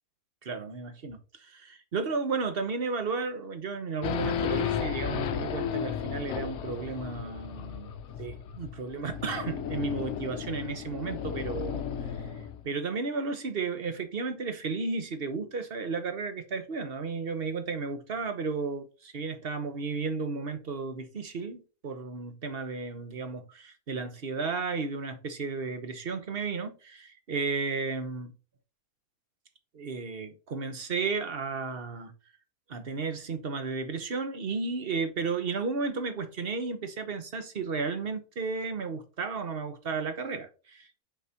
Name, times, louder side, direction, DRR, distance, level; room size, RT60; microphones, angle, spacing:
voice 1, 0.4-7.9 8.2-12.2 12.6-28.3 29.7-32.1 32.7-41.0, right 4 dB, 40° right, 1.2 m, -33 dB
Race car auto racing / Idling / Accelerating revving vroom, 4.0-12.6, left 8 dB, 60° left, 0.9 m, -34 dB
6.2 x 5.9 x 2.9 m
omnidirectional pair, 1.6 m